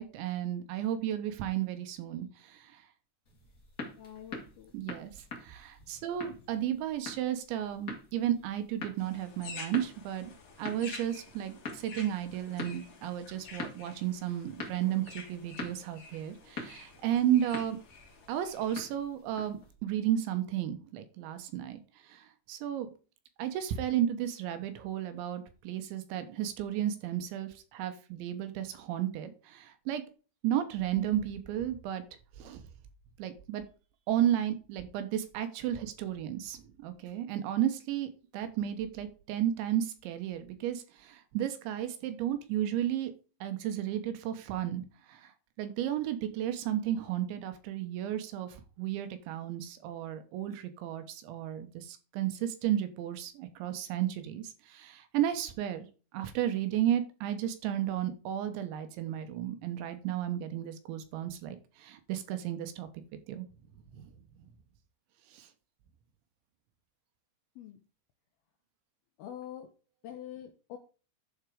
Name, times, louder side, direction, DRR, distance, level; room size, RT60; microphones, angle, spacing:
voice 1, 0.0-2.6 4.7-5.1 5.4-10.3 10.6-17.8 18.3-21.8 22.1-22.9 23.4-30.0 30.4-32.0 32.4-32.6 33.2-33.6 34.1-43.1 43.4-45.2 45.6-55.9 56.1-62.9 63.3-63.5 63.9-64.1 65.3-65.5, right 11 dB, 75° right, 9 dB, 3.3 m, -33 dB
sound 1, 3.2-19.7, left 3 dB, 60° left, 0.8 m, -46 dB
voice 2, 4.0-4.7 67.6-67.8 69.2-69.7 70.0-70.8, left 10 dB, 80° left, 4 dB, 2.2 m, -45 dB
sound 2, 9.0-18.9, left 4 dB, 45° left, 4.3 m, -50 dB
12.0 x 4.5 x 4.9 m, 0.36 s
omnidirectional pair, 5.5 m